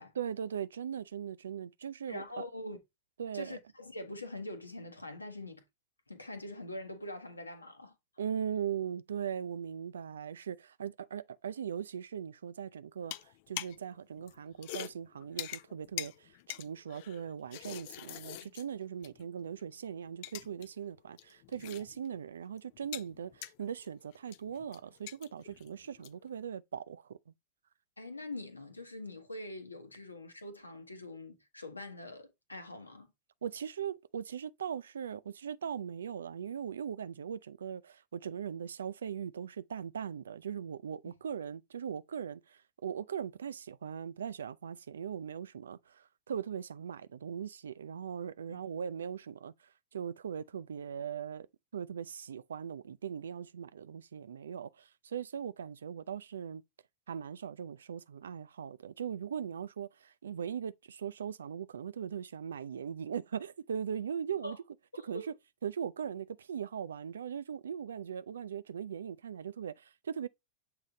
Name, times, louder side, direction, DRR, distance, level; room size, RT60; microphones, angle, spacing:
voice 1, 0.2-2.4 3.2-3.6 8.2-13.1 13.5-27.2 33.4-49.5 49.9-51.5 51.7-56.6 57.1-64.6 65.0-65.3 65.6-70.3, right 8 dB, 65° right, 0.4 m, -39 dB
voice 2, 2.1-2.8 3.3-5.6 6.1-7.9 18.4-18.5 28.0-33.1 48.5-48.6 64.4-64.6 64.9-65.3, left 2 dB, 80° left, 1.0 m, -44 dB
sound 1, 13.0-13.9 14.2-19.3 19.6-19.7 20.1-20.7 20.9-22.2 22.4-26.3, left 14 dB, 50° left, 0.4 m, -45 dB
7.6 x 3.2 x 3.9 m
figure-of-eight pair, 90°, 0 cm